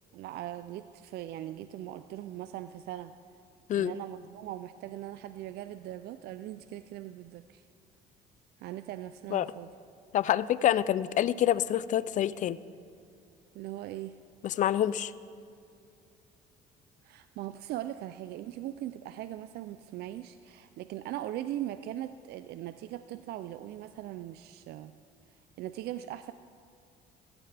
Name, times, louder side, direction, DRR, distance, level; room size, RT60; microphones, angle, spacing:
voice 1, 0.1-3.1 3.8-7.6 8.6-9.7 13.5-14.2 17.0-24.9 25.6-26.3, right 13 dB, 70° right, 11 dB, 0.4 m, -40 dB
voice 2, 10.1-12.6 14.4-15.1, left 11 dB, 50° left, 18 dB, 0.4 m, -27 dB
15.0 x 15.0 x 3.4 m, 2.4 s
cardioid pair, 110°, 17 cm